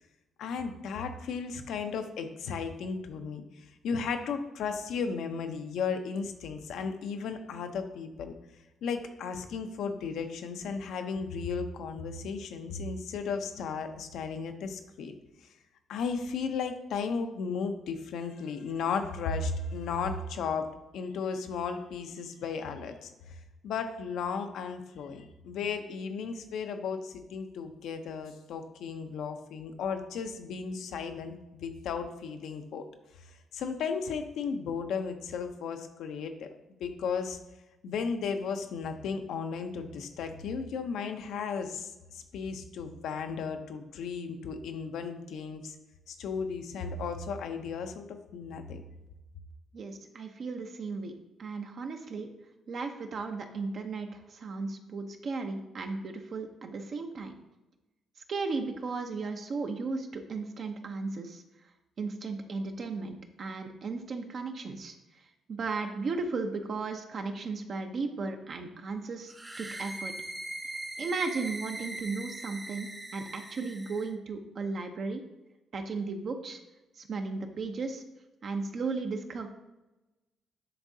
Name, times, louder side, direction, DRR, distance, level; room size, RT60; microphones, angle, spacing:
voice 1, 0.4-3.4 3.8-8.3 8.8-15.1 15.9-20.7 20.9-23.1 23.6-32.8 33.5-36.5 36.8-37.4 37.8-45.7 46.1-48.8, left 5 dB, 80° left, 7 dB, 0.6 m, -35 dB
voice 2, 49.7-51.1 51.4-52.3 52.7-57.3 58.3-61.4 62.0-64.9 65.5-70.1 71.0-75.2 75.7-76.6 77.1-78.0 78.4-79.5, right 4 dB, 55° right, 5 dB, 0.6 m, -35 dB
sound 1, 69.3-74.1, right 1 dB, 20° right, 0.7 m, -40 dB
9.9 x 3.6 x 2.7 m, 1.0 s
cardioid pair, 90°, 0 cm